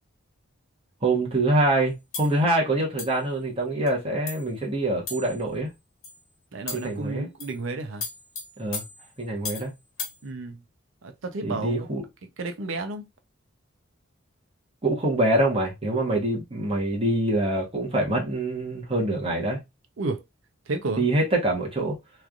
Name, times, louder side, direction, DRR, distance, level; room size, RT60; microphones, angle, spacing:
voice 1, 1.0-5.7 6.7-7.3 8.6-8.8 9.2-9.7 11.4-12.0 14.8-19.6 21.0-21.9, right 1 dB, 25° right, 1.0 m, -25 dB
sound 1, 2.1-2.4 3.0-3.2 3.9-4.0 4.3-4.5 5.1-5.4 6.0-6.2 6.7-7.0 7.4-7.6 8.0-9.7 10.0-10.2, left 4 dB, 80° left, 1.2 m, -36 dB
voice 2, 6.5-8.1 10.2-10.6 11.0-11.9 12.4-13.0 20.0-20.2 20.7-21.0, right 3 dB, 65° right, 0.6 m, -31 dB
3.1 x 2.5 x 2.3 m
head